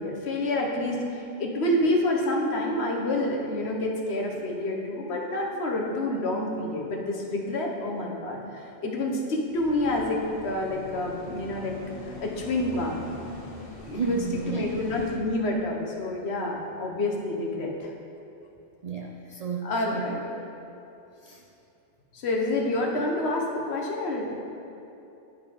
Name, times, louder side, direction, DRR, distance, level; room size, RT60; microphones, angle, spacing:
voice 1, 0.0-11.8 12.0-13.1 13.8-14.2 14.5-17.9 19.6-20.3 22.1-24.4, left 1 dB, 65° left, 0 dB, 1.2 m, -28 dB
sound 1, 9.5-15.2, left 1 dB, 80° left, 1.7 m, -43 dB
voice 2, 13.9-14.7 18.8-20.2 21.2-21.4, right 5 dB, 60° right, 0 dB, 0.4 m, -32 dB
11.0 x 3.7 x 4.9 m, 2.8 s
omnidirectional pair, 1.2 m